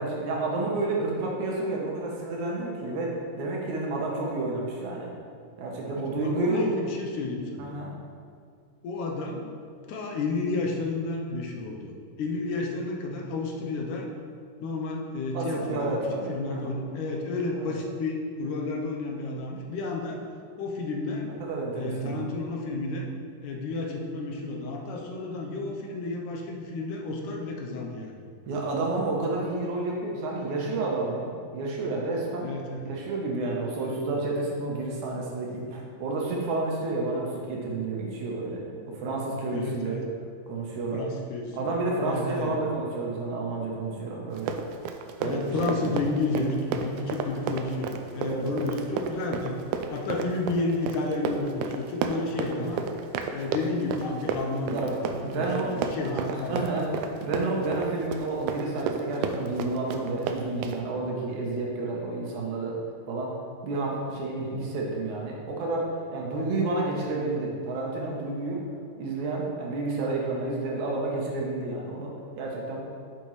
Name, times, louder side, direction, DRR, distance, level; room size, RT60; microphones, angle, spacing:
voice 1, 0.0-5.1 5.6-6.6 7.6-7.9 15.3-16.8 17.5-17.7 21.4-22.4 28.5-32.5 32.8-38.6 38.9-40.0 40.5-41.0 41.5-44.5 45.2-46.0 48.2-48.8 52.5-52.7 54.7-62.8 63.1-63.3 63.6-68.6 69.0-72.1 72.4-72.8, right 2 dB, 70° right, -2 dB, 2.2 m, -30 dB
voice 2, 6.0-7.7 8.8-9.4 9.9-11.9 12.2-14.1 14.6-16.0 16.3-20.2 20.6-21.3 21.7-23.1 23.4-28.2 32.4-32.9 39.5-40.1 40.9-41.8 42.0-42.5 45.2-49.6 49.9-52.8 53.3-56.7 64.4-64.6, left 3 dB, 75° left, 0 dB, 2.2 m, -31 dB
Run, 44.3-60.8, right 5 dB, 85° right, 1.7 m, -32 dB
8.6 x 6.8 x 3.1 m, 2.2 s
omnidirectional pair, 3.9 m